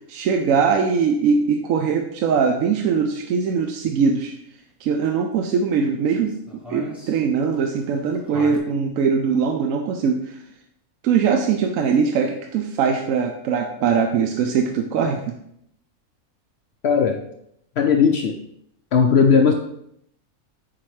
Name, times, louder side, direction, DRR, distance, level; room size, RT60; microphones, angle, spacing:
voice 1, 0.1-4.3 4.8-6.3 6.7-10.3 11.0-15.3, right 6 dB, 70° right, 3 dB, 0.9 m, -21 dB
sound 1, 6.0-8.6, left 1 dB, ahead, 0.9 m, -39 dB
voice 2, 16.8-17.2 17.8-18.4 18.9-19.5, left 6 dB, 65° left, 4 dB, 0.6 m, -17 dB
7.5 x 4.4 x 3.2 m, 0.74 s
omnidirectional pair, 1.6 m